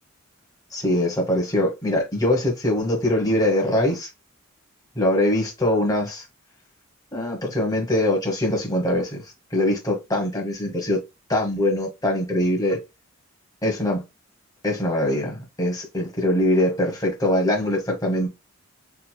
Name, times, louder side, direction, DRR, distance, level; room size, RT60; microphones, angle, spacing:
voice 1, 0.7-4.1 5.0-6.2 7.1-9.2 9.5-11.0 11.3-12.8 13.6-14.0 14.6-18.3, left 1 dB, 15° left, 1.2 m, -22 dB
4.5 x 2.8 x 2.2 m
head